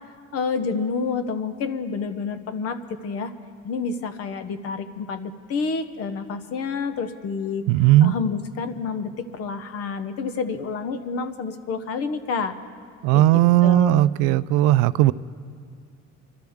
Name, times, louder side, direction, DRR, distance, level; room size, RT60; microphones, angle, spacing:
voice 1, 0.3-3.3 3.6-7.7 8.0-12.6 13.1-14.1, left 5 dB, 50° left, 11 dB, 0.9 m, -29 dB
voice 2, 7.7-8.1 13.0-15.1, right 14 dB, 85° right, 16 dB, 0.5 m, -17 dB
25.0 x 13.0 x 3.6 m, 2.1 s
cardioid pair, 150°, 31 cm